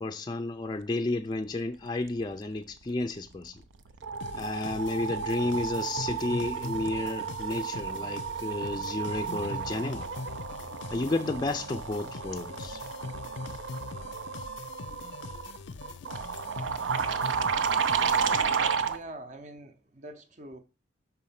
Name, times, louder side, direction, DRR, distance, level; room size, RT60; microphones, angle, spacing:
voice 1, 0.0-3.6 4.4-10.1 10.9-12.8, left 2 dB, 20° left, 0.4 m, -32 dB
sound 1, 3.2-3.5 3.7-19.0, right 6 dB, 90° right, 0.6 m, -32 dB
sound 2, 4.2-18.8, left 4 dB, 80° left, 0.5 m, -42 dB
voice 2, 18.8-20.6, right 1 dB, 40° right, 0.6 m, -44 dB
5.6 x 4.2 x 5.6 m
head